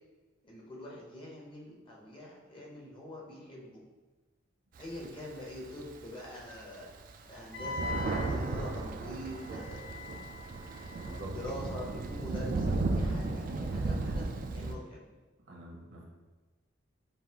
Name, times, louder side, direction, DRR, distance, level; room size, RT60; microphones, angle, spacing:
voice 1, 0.4-3.8 4.8-6.9 7.2-9.8 10.4-10.6 11.1-14.3 14.5-15.1, left 1 dB, 25° left, -3 dB, 0.7 m, -44 dB
Thunder, 4.8-6.0 6.6-6.7 6.9-14.7, right 3 dB, 45° right, 0.3 m, -34 dB
Wind instrument woodwind instrument, 7.5-12.2, left 3 dB, 80° left, 0.6 m, -44 dB
voice 2, 10.9-11.4 15.5-16.0, right 1 dB, 70° right, -2 dB, 0.9 m, -46 dB
5.4 x 2.4 x 2.8 m, 1.2 s
head